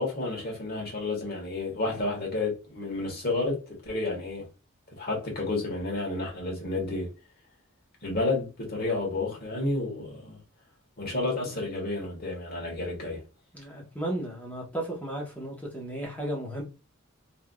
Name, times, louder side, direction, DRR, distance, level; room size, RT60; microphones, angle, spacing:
voice 1, 0.0-4.4 5.0-7.1 8.0-10.4 11.0-13.2, left 2 dB, 45° left, 1.4 m, -31 dB
voice 2, 13.5-16.6, right 1 dB, 5° left, 1.0 m, -34 dB
3.3 x 2.6 x 2.2 m
head